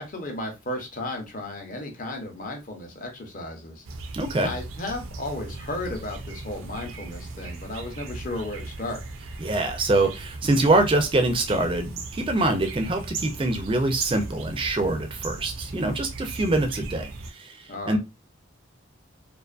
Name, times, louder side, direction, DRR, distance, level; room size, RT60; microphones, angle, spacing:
voice 1, 0.0-3.8 4.4-9.0 17.7-18.0, left 2 dB, 40° left, 3 dB, 0.7 m, -34 dB
sound 1, 3.8-17.3, right 3 dB, 85° right, 0.5 m, -37 dB
voice 2, 4.1-4.5 9.4-18.0, right 2 dB, 25° right, 6 dB, 0.4 m, -24 dB
2.4 x 2.4 x 2.4 m, 0.24 s
head